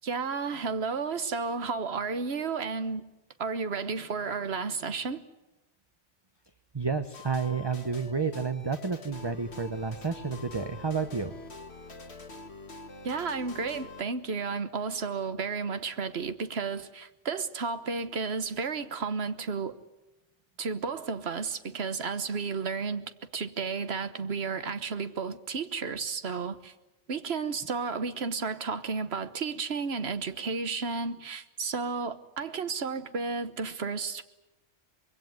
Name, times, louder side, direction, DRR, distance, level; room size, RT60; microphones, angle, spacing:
voice 1, 0.0-3.0 3.4-5.2 13.0-19.8 20.6-26.7 27.1-34.2, right 5 dB, 60° right, 1.4 m, -32 dB
voice 2, 6.7-11.3, right 5 dB, 25° right, 0.9 m, -30 dB
sound 1, 7.1-14.0, left 3 dB, 60° left, 2.1 m, -46 dB
25.0 x 22.0 x 9.4 m
omnidirectional pair, 1.2 m